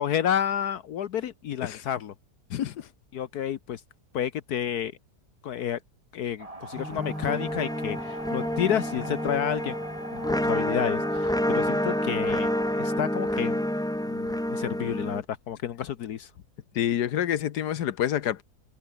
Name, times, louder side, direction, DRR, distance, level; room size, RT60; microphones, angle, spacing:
voice 1, 0.0-2.1 3.1-3.8 4.1-4.9 5.4-5.8 6.1-9.7 10.1-12.5 12.8-13.7 14.0-16.3, left 9 dB, 70° left, 1.4 m, -30 dB
voice 2, 2.5-2.9 16.7-18.4, left 10 dB, 90° left, 1.6 m, -27 dB
sound 1, 6.4-13.0, right 2 dB, 20° right, 2.8 m, -41 dB
sound 2, 6.8-15.2, left 1 dB, 5° left, 0.4 m, -28 dB
omnidirectional pair, 1.7 m